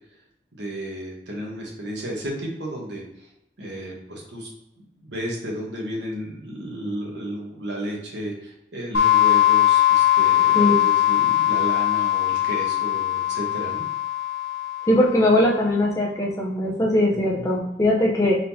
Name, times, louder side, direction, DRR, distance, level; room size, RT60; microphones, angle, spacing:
voice 1, 0.6-3.0 3.6-4.5 5.0-13.8 17.4-17.5, equal, 80° right, -1 dB, 1.3 m, -33 dB
sound 1, 8.9-15.5, left 13 dB, 65° left, 0.9 m, -20 dB
voice 2, 14.9-18.4, left 1 dB, 15° left, -3 dB, 0.7 m, -20 dB
4.1 x 3.7 x 2.8 m, 0.85 s
head